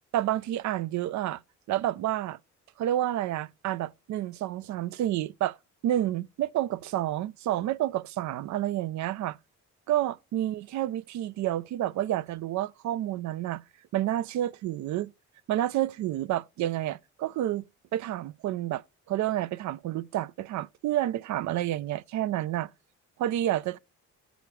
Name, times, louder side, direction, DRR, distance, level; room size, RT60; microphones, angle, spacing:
voice 1, 0.1-1.4 1.7-2.4 2.8-5.6 5.8-9.4 9.9-13.6 13.9-15.1 15.5-17.7 17.9-22.7 23.2-23.8, right 13 dB, 70° right, 0.5 m, -29 dB
7.7 x 5.0 x 4.7 m
cardioid pair, 90°, 30 cm